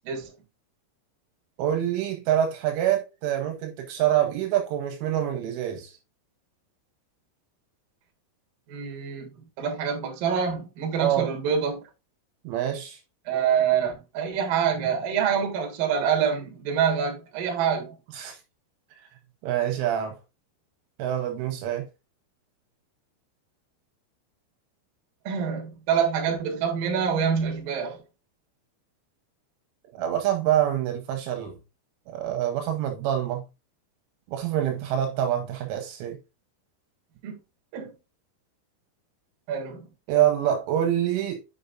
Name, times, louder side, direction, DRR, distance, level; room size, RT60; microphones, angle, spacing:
voice 1, 1.6-5.9 11.0-11.3 12.4-13.0 18.2-18.4 19.4-20.2 21.0-21.9 29.9-31.6 32.1-33.4 34.3-36.2 40.1-41.4, right 11 dB, 80° right, 3.3 m, -26 dB
voice 2, 8.7-9.3 9.6-11.8 13.3-18.0 25.2-28.0 37.2-37.4 37.7-37.9 39.5-39.9, right 7 dB, 60° right, 2.7 m, -26 dB
8.5 x 5.5 x 2.5 m
omnidirectional pair, 5.9 m